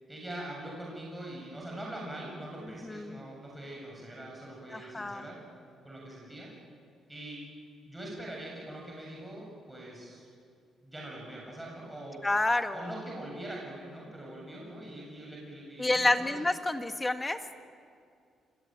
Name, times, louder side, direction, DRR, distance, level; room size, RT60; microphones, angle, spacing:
voice 1, 0.1-5.4 5.8-6.5 7.1-7.5 7.9-10.3 10.8-12.2 12.7-16.4, right 1 dB, 10° right, -3 dB, 7.8 m, -43 dB
voice 2, 2.8-3.2 4.7-5.2 12.2-12.9 15.8-17.4, left 2 dB, 15° left, 7 dB, 1.9 m, -29 dB
27.0 x 23.0 x 9.2 m, 2.3 s
cardioid pair, 90°, 0 cm